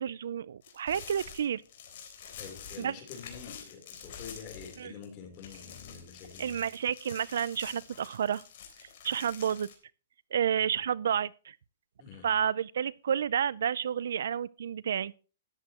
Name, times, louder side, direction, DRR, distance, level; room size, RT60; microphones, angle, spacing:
voice 1, 0.0-1.6 2.8-2.9 4.8-4.9 6.4-8.4 9.0-9.7 10.3-11.6 12.2-15.1, right 8 dB, 70° right, 0.5 m, -30 dB
sound 1, 0.6-5.1 5.3-9.7, left 7 dB, 50° left, 3.6 m, -47 dB
voice 2, 2.4-6.6 10.7-10.8 12.0-12.3, left 7 dB, 30° left, 3.5 m, -47 dB
13.5 x 10.5 x 2.9 m
hypercardioid pair, 160°, 0 cm